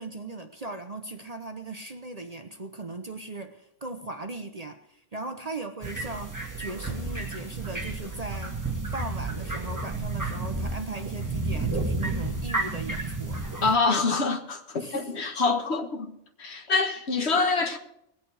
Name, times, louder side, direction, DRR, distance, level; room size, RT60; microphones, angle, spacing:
voice 1, 0.0-8.6 8.9-13.4 14.8-15.2, right 2 dB, 35° right, 0.9 m, -38 dB
sound 1, 5.8-13.8, right 3 dB, 15° right, 2.0 m, -31 dB
voice 2, 13.6-17.8, left 4 dB, 65° left, 1.8 m, -26 dB
20.0 x 8.5 x 4.8 m
omnidirectional pair, 1.2 m